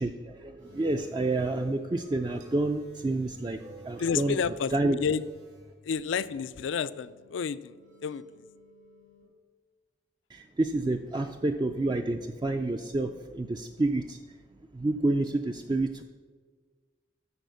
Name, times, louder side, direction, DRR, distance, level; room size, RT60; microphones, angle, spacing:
voice 1, 0.0-4.4 4.7-5.0 10.3-14.2 14.7-16.0, right 2 dB, 20° right, 6 dB, 0.3 m, -29 dB
sound 1, 0.6-9.2, right 1 dB, 75° right, 2.8 m, -53 dB
voice 2, 4.0-5.2 5.9-7.7 8.0-8.2, left 6 dB, 75° left, 16 dB, 0.4 m, -30 dB
12.5 x 4.2 x 6.8 m, 1.5 s
head